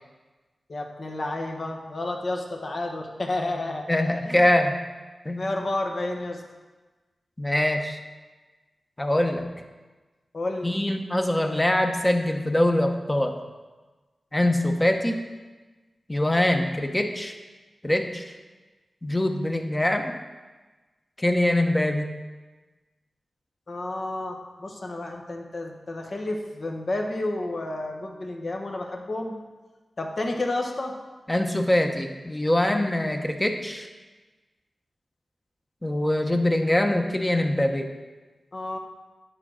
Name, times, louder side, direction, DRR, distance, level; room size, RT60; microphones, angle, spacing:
voice 1, 0.7-3.9 4.2-4.4 5.3-6.4 10.3-10.8 23.7-29.3 30.0-30.9 38.5-38.8, left 2 dB, 55° left, 2 dB, 1.3 m, -31 dB
voice 2, 3.9-4.8 5.2-5.5 7.4-8.0 9.0-9.5 10.6-13.3 14.3-15.3 16.1-17.3 17.8-18.2 19.0-20.1 21.2-22.1 31.3-33.9 35.8-37.9, left 1 dB, 15° left, 4 dB, 1.0 m, -23 dB
9.7 x 4.8 x 6.3 m, 1.3 s
cardioid pair, 65°, 0 cm